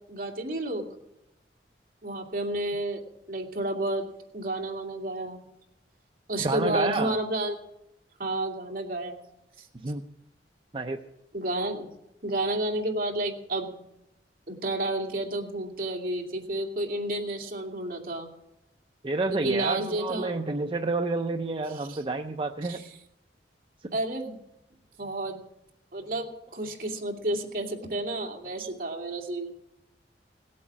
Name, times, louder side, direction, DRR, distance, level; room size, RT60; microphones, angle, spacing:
voice 1, 0.1-0.9 2.0-3.0 3.3-4.0 4.3-5.4 6.3-7.5 8.2-9.1 9.6-9.7 11.3-11.9 12.2-13.7 14.5-18.3 19.3-20.4 21.7-22.0 22.6-22.9 23.9-24.4 25.0-25.4 25.9-29.6, right 1 dB, 55° right, 1 dB, 2.5 m, -31 dB
voice 2, 6.4-7.2 9.8-10.0 10.7-11.0 19.0-22.8 28.6-28.7, right 3 dB, 30° right, 5 dB, 0.6 m, -29 dB
18.0 x 8.5 x 7.5 m, 0.87 s
head